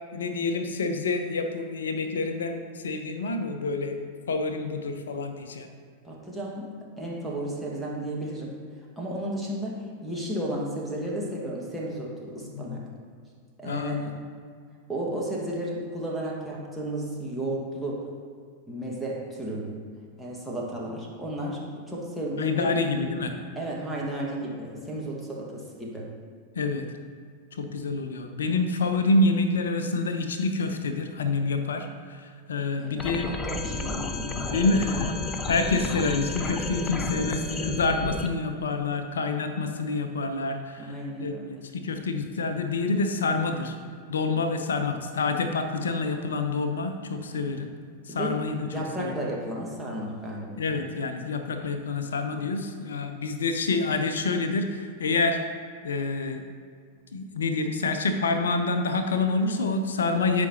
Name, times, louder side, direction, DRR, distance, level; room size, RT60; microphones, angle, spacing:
voice 1, 0.1-5.7 12.5-12.8 13.6-14.0 22.4-23.3 26.6-26.8 27.5-33.3 34.4-35.1 35.5-40.9 41.2-41.4 41.7-43.7 44.1-47.7 48.1-48.6 49.0-49.1 50.6-55.4 55.8-56.4 57.1-60.5, left 3 dB, 65° left, 7 dB, 0.7 m, -27 dB
voice 2, 6.0-8.6 9.0-12.9 13.6-14.3 14.9-18.1 18.7-19.9 20.2-22.8 23.5-26.1 32.8-35.0 37.2-38.0 40.8-41.7 47.4-47.7 48.1-50.6, right 1 dB, ahead, -5 dB, 1.5 m, -33 dB
sound 1, 33.0-38.3, left 4 dB, 20° left, 0.6 m, -32 dB
13.0 x 5.2 x 2.8 m, 2.1 s
figure-of-eight pair, 90°, 0 cm